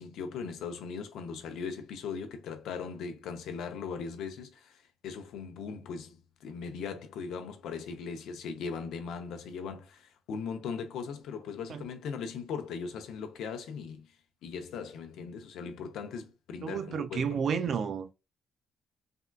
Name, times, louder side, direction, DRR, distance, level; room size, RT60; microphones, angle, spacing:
voice 1, 0.0-14.1 14.4-17.6, left 5 dB, 80° left, 0.6 m, -39 dB
voice 2, 16.6-18.1, right 6 dB, 60° right, 0.4 m, -31 dB
3.6 x 2.2 x 2.2 m
cardioid pair, 90°, 0 cm